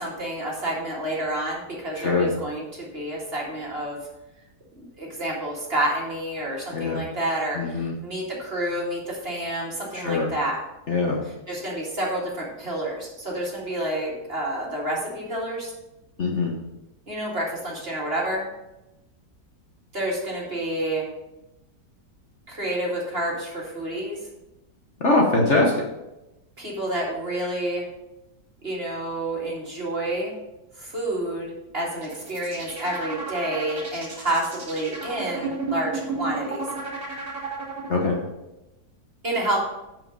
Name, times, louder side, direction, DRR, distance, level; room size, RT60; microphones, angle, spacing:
voice 1, 0.0-4.0 4.8-10.6 11.5-15.7 17.1-18.5 19.9-21.1 22.5-24.2 26.6-27.9 28.6-30.3 30.8-36.7 39.2-39.6, right 1 dB, 35° right, -3 dB, 2.3 m, -29 dB
voice 2, 2.0-2.3 6.7-7.0 7.5-7.9 9.9-10.3 10.9-11.2 16.2-16.5 25.0-25.7 37.9-38.2, left 3 dB, 45° left, -1 dB, 1.3 m, -22 dB
sound 1, 32.0-38.2, right 4 dB, 50° right, 2.5 m, -33 dB
7.8 x 6.2 x 5.3 m, 0.96 s
omnidirectional pair, 1.8 m